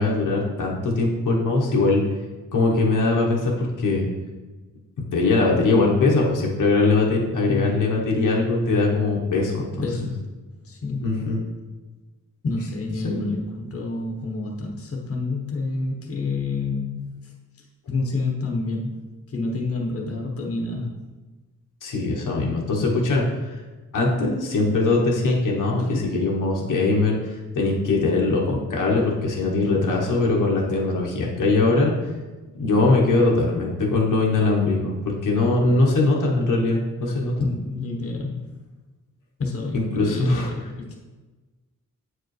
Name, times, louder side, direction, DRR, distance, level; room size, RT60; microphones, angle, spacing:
voice 1, 0.0-2.0 2.5-4.1 5.1-9.8 11.0-11.4 13.0-13.3 21.8-23.5 23.9-27.2 27.6-31.9 32.5-35.0 35.2-37.3 39.9-40.5, left 3 dB, 75° left, -2 dB, 1.2 m, -21 dB
voice 2, 9.8-10.2 10.6-11.1 12.4-17.3 17.9-21.0 25.9-26.2 37.4-38.6 39.4-40.9, left 3 dB, 45° left, -1 dB, 1.2 m, -29 dB
8.4 x 4.8 x 3.2 m, 1.2 s
wide cardioid pair, 140°, 32 cm